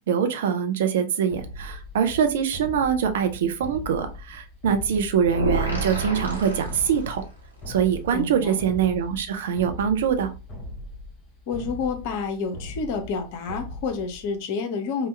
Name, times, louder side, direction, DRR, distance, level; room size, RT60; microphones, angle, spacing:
voice 1, 0.1-7.2 7.7-10.3, right 7 dB, 55° right, 7 dB, 0.4 m, -24 dB
sound 1, 1.3-14.4, left 1 dB, 30° left, 1.0 m, -40 dB
sound 2, 5.3-7.4, right 2 dB, 85° right, 0.9 m, -28 dB
voice 2, 8.1-8.6 11.5-15.1, left 5 dB, 45° left, 6 dB, 0.6 m, -29 dB
2.8 x 2.2 x 3.2 m, 0.33 s
figure-of-eight pair, 90°, 0 cm